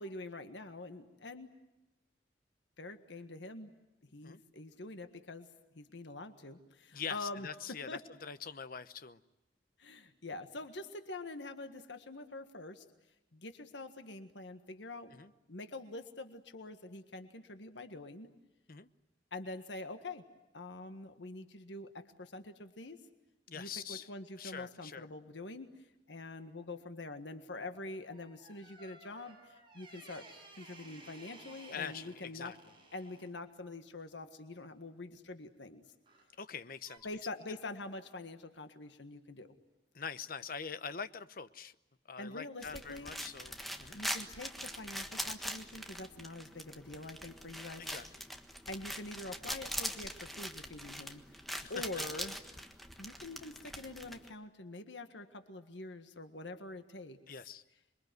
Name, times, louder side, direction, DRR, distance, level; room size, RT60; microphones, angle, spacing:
voice 1, 0.0-1.5 2.8-3.7 4.0-5.5 5.8-8.0 9.8-12.9 13.3-15.2 15.5-18.3 19.3-20.2 20.5-23.0 23.5-30.3 30.5-32.5 32.9-35.8 37.0-39.5 42.2-43.1 43.9-47.9 48.7-52.4 53.0-57.2, left 2 dB, 90° left, 8 dB, 1.7 m, -45 dB
voice 2, 6.9-9.2 15.1-15.3 18.7-18.9 23.5-24.1 24.4-25.1 31.7-32.6 36.4-37.1 39.9-41.7 42.1-44.0 47.8-48.1 51.6-51.7 57.3-57.6, left 6 dB, 55° left, 13 dB, 0.9 m, -44 dB
sound 1, 28.1-33.3 36.0-36.3 36.9-37.0, right 2 dB, 30° right, 7.1 m, -56 dB
sound 2, 42.6-54.3, equal, ahead, 1.5 m, -43 dB
27.5 x 23.0 x 9.4 m, 0.95 s
head